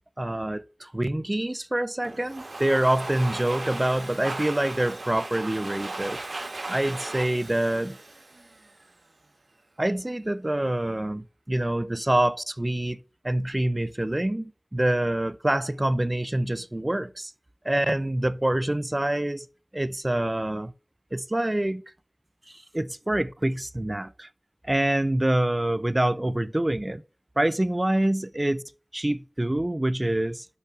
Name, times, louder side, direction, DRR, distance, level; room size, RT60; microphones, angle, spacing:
voice 1, 0.2-6.2 6.7-8.0 9.8-13.0 13.2-17.3 17.6-19.5 19.7-20.7 21.1-21.8 22.5-24.3 24.6-27.0 27.4-28.6 28.9-30.5, right 1 dB, 30° right, 0.4 m, -26 dB
Domestic sounds home sounds, 2.0-8.9, right 2 dB, 80° right, 1.2 m, -37 dB
6.9 x 5.6 x 5.7 m
wide cardioid pair, 45°, 0 cm